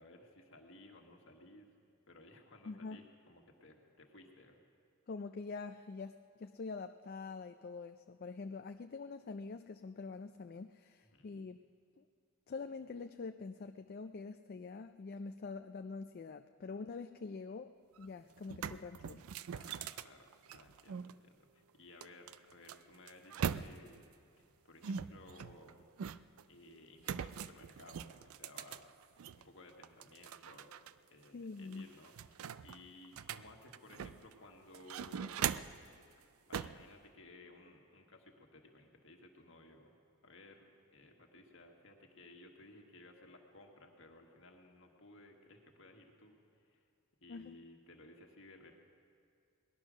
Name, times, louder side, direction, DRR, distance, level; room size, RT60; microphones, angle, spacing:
voice 1, 0.0-1.7 2.1-4.6 11.0-11.3 19.5-24.1 24.4-25.9 26.5-29.1 29.4-30.7 31.1-35.6 36.5-39.9 40.2-46.8 47.2-48.8, left 2 dB, 60° left, 2 dB, 1.6 m, -58 dB
voice 2, 2.7-3.0 5.1-11.6 12.0-12.1 12.5-17.7 18.0-19.2 31.3-31.9 47.3-47.6, left 4 dB, 45° left, 8 dB, 0.3 m, -45 dB
sound 1, 18.0-18.1 18.4-21.1 22.0-24.0 24.8-26.4 27.0-29.4 29.8-30.9 31.2-31.3 31.7-34.3 34.7-35.9 36.5-36.8, right 7 dB, 80° right, 0.4 m, -41 dB
19.0 x 11.5 x 6.2 m, 2.3 s
head